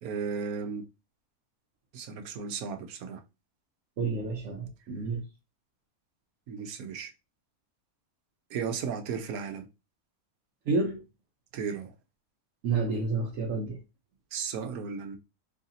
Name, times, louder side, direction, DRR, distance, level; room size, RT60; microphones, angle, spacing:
voice 1, 0.0-0.8 1.9-3.2 6.5-7.1 8.5-9.7 11.5-11.9 14.3-15.2, right 6 dB, 90° right, 1.2 m, -35 dB
voice 2, 4.0-5.2 10.7-11.0 12.6-13.8, right 3 dB, 70° right, 1.1 m, -29 dB
3.2 x 2.7 x 3.8 m
omnidirectional pair, 1.5 m